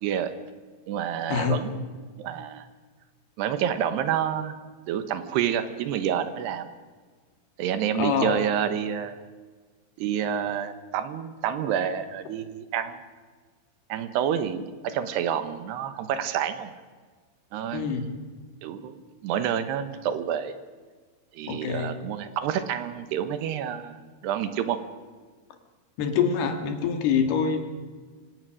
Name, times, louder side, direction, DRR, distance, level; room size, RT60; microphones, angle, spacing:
voice 1, 0.0-0.3 0.9-1.9 2.2-2.7 3.4-4.5 4.9-6.7 7.6-9.2 10.0-13.0 13.9-16.7 17.5-18.1 18.6-20.6 21.3-24.0 24.2-24.8, right 9 dB, 70° right, 10 dB, 2.8 m, -28 dB
voice 2, 1.3-1.6 8.0-8.4 17.7-18.2 21.5-21.9 26.0-27.7, left 7 dB, 60° left, 6 dB, 3.5 m, -25 dB
26.0 x 17.5 x 6.4 m, 1.5 s
omnidirectional pair, 5.6 m